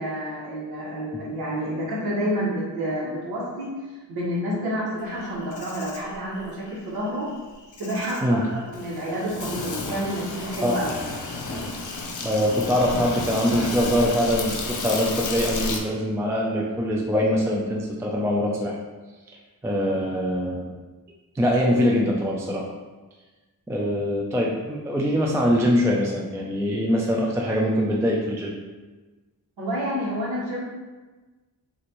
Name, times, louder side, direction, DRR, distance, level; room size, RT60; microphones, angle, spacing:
voice 1, 0.0-3.7 4.1-7.3 7.8-10.9 29.6-30.6, equal, 80° right, -8 dB, 1.5 m, -29 dB
Insect, 5.1-15.8, left 3 dB, 55° left, 0.6 m, -32 dB
voice 2, 12.2-18.8 19.6-20.7 21.4-22.6 23.7-28.5, equal, 10° right, -2 dB, 0.3 m, -23 dB
5.9 x 2.6 x 3.0 m, 1.2 s
wide cardioid pair, 160°, 37 cm